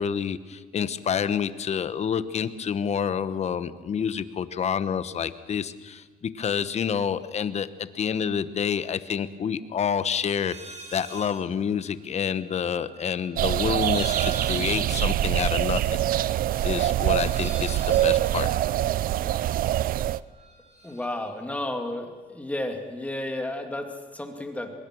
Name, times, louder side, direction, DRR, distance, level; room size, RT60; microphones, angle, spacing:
voice 1, 0.0-16.0 16.3-18.5, left 7 dB, 40° left, 13 dB, 1.1 m, -28 dB
sound 1, 10.4-11.4 11.7-19.9 20.1-21.2, equal, 40° right, 7.1 m, -45 dB
sound 2, 13.4-20.2, right 13 dB, 60° right, 0.5 m, -24 dB
voice 2, 20.8-24.7, left 1 dB, 10° left, 4 dB, 2.7 m, -32 dB
24.0 x 21.5 x 6.4 m, 1.5 s
cardioid pair, 110°, 17 cm